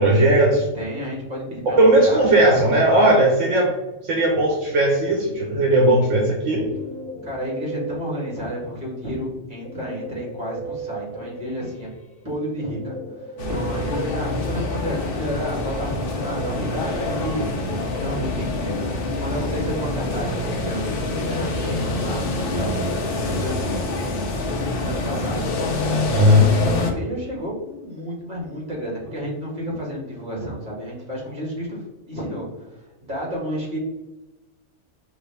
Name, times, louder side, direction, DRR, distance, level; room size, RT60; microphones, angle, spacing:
voice 1, 0.0-0.7 1.7-3.7 4.0-6.7 26.1-26.5, right 1 dB, 75° right, -1 dB, 1.2 m, -17 dB
voice 2, 0.8-3.1 7.2-11.9 12.2-17.4 18.0-22.8 23.3-23.9 24.8-25.5 26.6-33.8, equal, 40° right, -4 dB, 1.8 m, -31 dB
Guitar, 6.3-8.9 9.6-15.1, right 3 dB, 10° left, 0.3 m, -37 dB
sound 1, 13.4-26.9, left 2 dB, 55° left, 0.8 m, -26 dB
4.9 x 3.1 x 3.3 m, 1.0 s
omnidirectional pair, 1.3 m